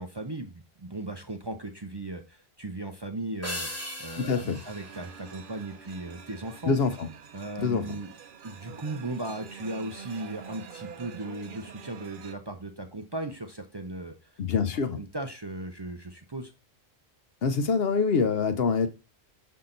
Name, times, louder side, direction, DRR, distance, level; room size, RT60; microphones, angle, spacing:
voice 1, 0.0-3.7 4.0-6.8 7.3-8.1 8.4-14.3 15.0-16.5, right 2 dB, 30° right, 0.6 m, -37 dB
sound 1, 3.4-6.1, left 1 dB, 15° left, 1.6 m, -39 dB
voice 2, 4.2-4.6 6.7-7.1 7.6-7.8 14.4-15.0 17.4-18.9, left 5 dB, 70° left, 0.9 m, -25 dB
sound 2, 4.5-12.3, right 7 dB, 55° right, 0.8 m, -46 dB
5.8 x 5.6 x 3.8 m
omnidirectional pair, 1.1 m